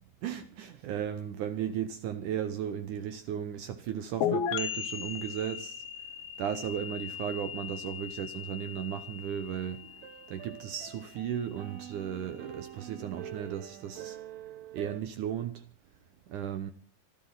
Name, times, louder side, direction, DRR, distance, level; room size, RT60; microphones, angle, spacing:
voice 1, 0.2-5.8 6.4-9.9 10.3-14.2 14.7-15.6 16.3-16.7, right 9 dB, 70° right, 2.0 m, -35 dB
sound 1, 4.2-11.8, left 9 dB, 75° left, 2.7 m, -37 dB
sound 2, 9.5-15.0, right 11 dB, 85° right, 1.6 m, -46 dB
26.0 x 12.5 x 4.0 m
omnidirectional pair, 4.7 m